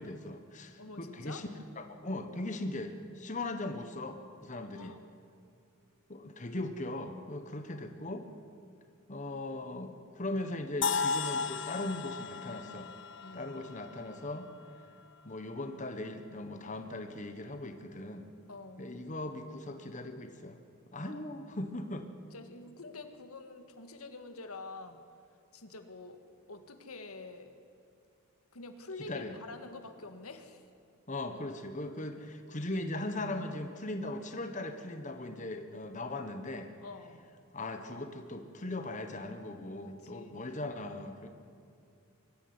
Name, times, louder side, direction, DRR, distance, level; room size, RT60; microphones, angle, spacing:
voice 1, 0.0-1.5 1.8-4.9 6.1-8.3 9.1-12.9 13.3-14.5 15.2-18.3 18.8-20.6 20.9-22.1 29.1-29.4 31.1-36.7 37.5-41.3, left 2 dB, 35° left, 6 dB, 1.4 m, -39 dB
voice 2, 0.8-1.5 4.6-5.0 13.2-13.5 18.5-18.8 21.0-21.2 22.3-25.0 25.5-26.2 26.5-27.6 28.5-30.6 36.0-36.3 36.8-37.2 40.0-40.7, left 3 dB, 85° left, 7 dB, 1.8 m, -47 dB
sound 1, 10.8-14.7, left 5 dB, 55° left, 0.8 m, -35 dB
22.5 x 14.0 x 9.6 m, 2.5 s
head